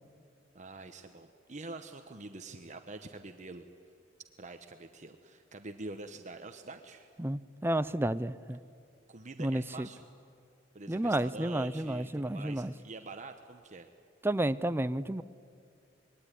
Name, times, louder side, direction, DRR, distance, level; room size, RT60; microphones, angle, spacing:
voice 1, 0.5-3.7 4.4-7.1 9.1-10.1 10.7-13.9, right 3 dB, 40° right, 6 dB, 1.1 m, -46 dB
voice 2, 7.2-8.6 9.4-9.9 10.9-12.7 14.2-15.2, right 1 dB, 10° right, 13 dB, 0.6 m, -31 dB
26.0 x 21.5 x 10.0 m, 2.5 s
head